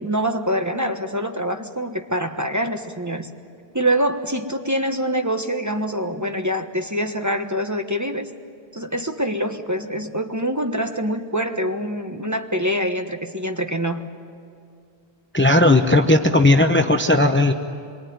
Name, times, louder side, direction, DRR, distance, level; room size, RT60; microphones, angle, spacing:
voice 1, 0.0-3.3 3.7-8.3 8.7-14.1, equal, 15° right, 5 dB, 1.3 m, -25 dB
voice 2, 15.3-17.5, left 2 dB, 10° left, 6 dB, 0.9 m, -16 dB
26.5 x 23.0 x 9.4 m, 2.4 s
omnidirectional pair, 1.0 m